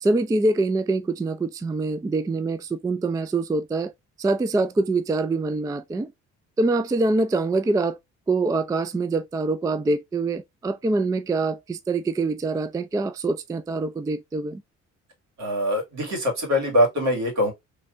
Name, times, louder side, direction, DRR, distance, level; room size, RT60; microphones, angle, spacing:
voice 1, 0.0-3.9 4.2-6.1 6.6-8.0 8.3-14.6, right 3 dB, 10° right, 0.3 m, -24 dB
voice 2, 15.4-17.5, equal, 65° right, 2.6 m, -23 dB
3.4 x 3.2 x 2.5 m
cardioid pair, 90°, 30 cm